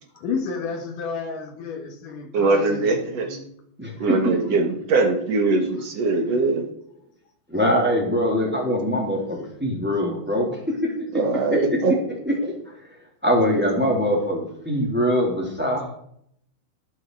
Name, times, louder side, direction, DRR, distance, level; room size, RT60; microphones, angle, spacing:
voice 1, 0.2-3.4, left 5 dB, 90° left, 4 dB, 3.4 m, -31 dB
voice 2, 2.3-3.4 4.0-6.7 11.1-11.9, right 3 dB, 60° right, 4 dB, 2.5 m, -22 dB
voice 3, 3.8-4.2 7.5-10.9 11.5-11.6 12.3-12.4 12.6-12.7 13.2-16.0, equal, 5° right, -1 dB, 3.0 m, -23 dB
19.0 x 7.5 x 4.8 m, 0.70 s
omnidirectional pair, 3.5 m